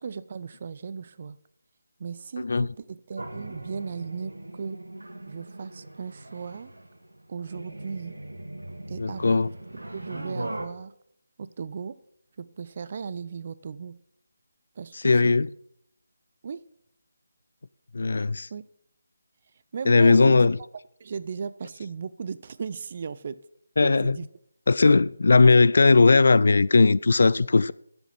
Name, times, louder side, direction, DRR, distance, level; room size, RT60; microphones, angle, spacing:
voice 1, 0.0-1.4 2.0-4.8 5.3-6.7 7.3-8.2 8.9-9.4 9.9-10.9 11.4-11.9 12.4-14.0 14.8-15.3 16.4-16.6 18.5-18.6 19.7-20.5 21.0-23.4 23.8-24.3 24.8-25.0, right 6 dB, 35° right, 0.5 m, -36 dB
voice 2, 2.4-2.7 9.0-9.5 15.0-15.5 17.9-18.5 19.9-20.6 23.8-24.2 24.7-27.7, left 3 dB, 50° left, 0.3 m, -18 dB
sound 1, 3.2-10.7, right 1 dB, 70° right, 1.8 m, -39 dB
10.5 x 7.9 x 6.0 m
figure-of-eight pair, 155°, 0 cm